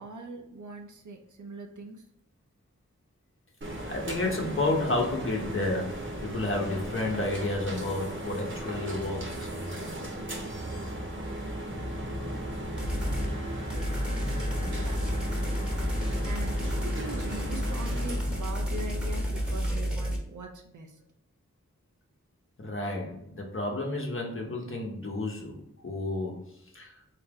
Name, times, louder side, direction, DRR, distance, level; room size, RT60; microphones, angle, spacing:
voice 1, 0.0-2.0 14.8-15.7 16.2-21.0, right 2 dB, 80° right, 3 dB, 0.7 m, -42 dB
sound 1, 3.6-19.7, right 1 dB, 40° right, 1.0 m, -36 dB
voice 2, 3.9-9.5 22.6-26.4 26.7-26.9, left 2 dB, 45° left, 0 dB, 1.0 m, -31 dB
sound 2, 11.7-19.8, left 1 dB, 20° left, 0.6 m, -41 dB
sound 3, 12.8-13.3 13.7-20.2, equal, 5° right, 1.0 m, -31 dB
3.5 x 2.9 x 3.5 m, 0.76 s
wide cardioid pair, 55°, 30 cm